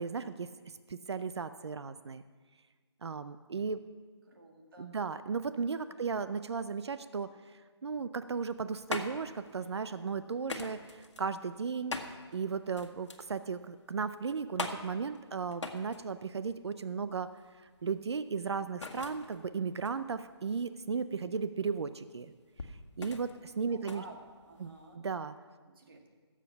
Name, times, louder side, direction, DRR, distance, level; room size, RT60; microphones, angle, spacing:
voice 1, 0.0-2.2 3.0-3.8 4.8-17.3 17.8-22.3 22.7-24.0 24.6-25.3, right 5 dB, 65° right, 12 dB, 0.5 m, -36 dB
voice 2, 4.2-5.0 5.8-6.1 23.7-24.2 24.5-25.0 25.7-26.1, right 2 dB, 50° right, 2 dB, 2.1 m, -53 dB
sound 1, 8.4-24.9, left 3 dB, 85° left, 1.5 m, -44 dB
16.0 x 7.5 x 5.7 m, 1.5 s
hypercardioid pair, 175°, 15 cm